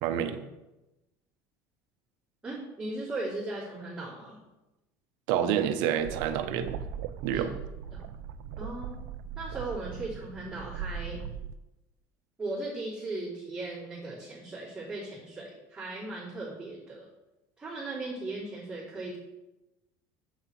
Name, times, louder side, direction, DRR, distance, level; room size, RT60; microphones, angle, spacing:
voice 1, 0.0-0.4 5.3-6.8 7.2-7.5, right 9 dB, 70° right, 9 dB, 0.8 m, -28 dB
voice 2, 2.4-4.4 7.3-7.5 7.9-8.0 8.6-9.0 9.3-11.2 12.4-17.1 17.6-19.2, right 2 dB, 10° right, -11 dB, 3.2 m, -37 dB
sound 1, 6.0-11.5, right 8 dB, 90° right, 0.4 m, -39 dB
7.7 x 7.3 x 4.6 m, 1.0 s
supercardioid pair, 125°, 8 cm